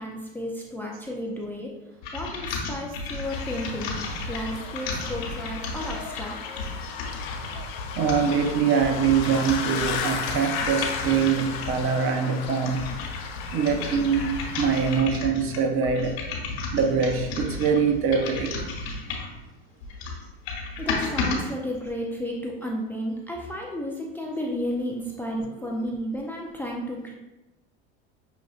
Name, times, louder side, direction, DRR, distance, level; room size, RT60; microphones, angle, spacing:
voice 1, 0.0-1.7 2.1-4.0 4.3-6.6 20.8-27.1, equal, 5° left, -1 dB, 0.3 m, -32 dB
sound 1, 2.0-11.9 12.4-19.4 19.8-21.4, left 3 dB, 75° left, 1.2 m, -33 dB
sound 2, 3.2-15.0, left 6 dB, 60° left, 0.7 m, -35 dB
voice 2, 8.0-12.9 13.5-16.2 16.7-18.5, right 6 dB, 45° right, 6 dB, 0.6 m, -23 dB
6.0 x 2.5 x 2.4 m, 1.0 s
supercardioid pair, 105°, 31 cm